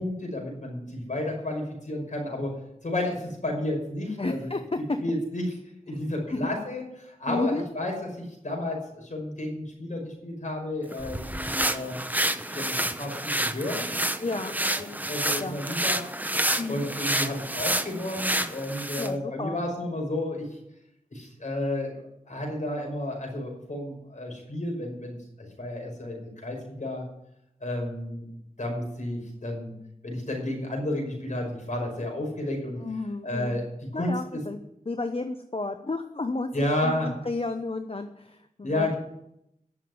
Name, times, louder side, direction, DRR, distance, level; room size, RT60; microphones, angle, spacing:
voice 1, 0.0-2.5 2.8-4.5 5.0-5.4 5.9-12.0 12.5-14.1 14.4-16.0 16.7-20.5 21.1-27.1 27.6-28.2 28.6-29.7 30.0-32.8 33.2-34.4 36.5-37.1 38.6-39.0, left 1 dB, 60° left, 1 dB, 5.4 m, -32 dB
voice 2, 4.2-4.8 5.9-6.0 6.3-6.6 7.3-7.6 14.2-14.6 15.4-15.6 16.6-16.9 19.0-19.6 32.8-33.6 33.9-34.6 34.9-36.5 36.8-38.9, left 2 dB, 45° left, 7 dB, 0.9 m, -32 dB
sound 1, 10.9-19.1, right 1 dB, 10° right, 0.8 m, -29 dB
11.0 x 7.4 x 9.4 m, 0.80 s
wide cardioid pair, 60°, 14 cm